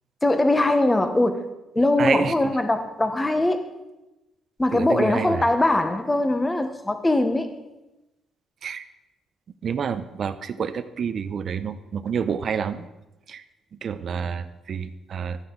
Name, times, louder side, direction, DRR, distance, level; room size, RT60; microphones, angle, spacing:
voice 1, 0.2-1.5 1.7-3.6 4.6-7.5, left 2 dB, 15° left, 8 dB, 1.2 m, -21 dB
voice 2, 2.0-2.5 4.7-5.4 8.6-8.8 9.6-12.9 13.3-13.4 13.7-15.4, right 7 dB, 55° right, 13 dB, 0.7 m, -28 dB
13.0 x 9.8 x 3.9 m, 1.0 s
cardioid pair, 90°, 0 cm